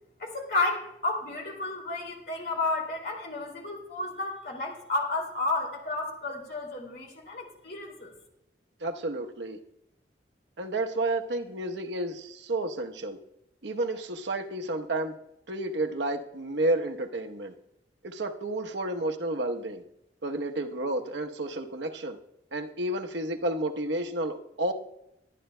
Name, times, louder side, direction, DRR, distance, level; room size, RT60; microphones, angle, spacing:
voice 1, 0.2-8.1, left 2 dB, 60° left, 1 dB, 2.5 m, -32 dB
voice 2, 8.8-9.6 10.6-13.2 13.6-15.1 15.5-17.5 18.0-19.8 20.2-22.2 22.5-24.7, right 1 dB, 85° right, 5 dB, 1.0 m, -31 dB
21.5 x 10.0 x 2.2 m, 0.81 s
head